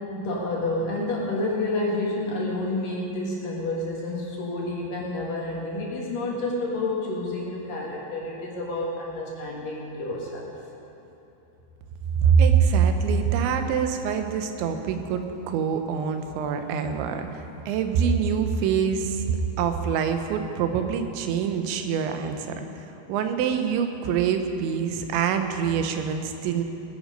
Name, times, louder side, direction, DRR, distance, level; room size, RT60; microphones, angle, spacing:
voice 1, 0.0-10.5, left 2 dB, 60° left, -3 dB, 3.0 m, -29 dB
voice 2, 12.2-19.2 19.6-26.6, right 7 dB, 90° right, 6 dB, 3.2 m, -25 dB
18.5 x 10.5 x 5.3 m, 3.0 s
omnidirectional pair, 5.1 m